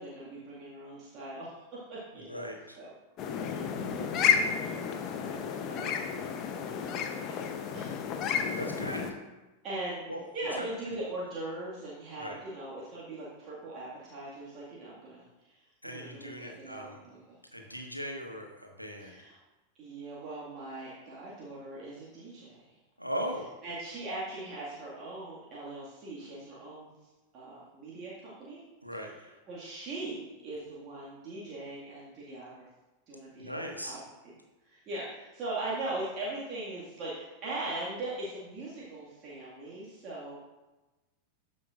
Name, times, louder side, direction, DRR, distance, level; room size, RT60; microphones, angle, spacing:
voice 1, 0.0-2.5 2.8-2.9 3.3-5.0 5.7-6.3 6.7-7.0 7.2-8.1 9.6-10.0 10.3-17.4 19.0-19.3 19.8-22.8 23.6-26.9 27.3-28.6 29.5-32.7 33.1-34.3 34.6-40.4, right 2 dB, 35° right, -7 dB, 1.9 m, -40 dB
voice 2, 2.2-2.8 8.5-9.1 10.1-10.2 10.6-10.7 12.2-12.4 15.8-17.0 17.5-19.1 23.0-23.5 28.8-29.4 33.4-34.0, equal, 90° left, 2 dB, 1.2 m, -38 dB
sound 1, 3.2-9.1, left 7 dB, 35° left, 0.7 m, -31 dB
13.5 x 5.2 x 2.5 m, 1.1 s
figure-of-eight pair, 90°, 0 cm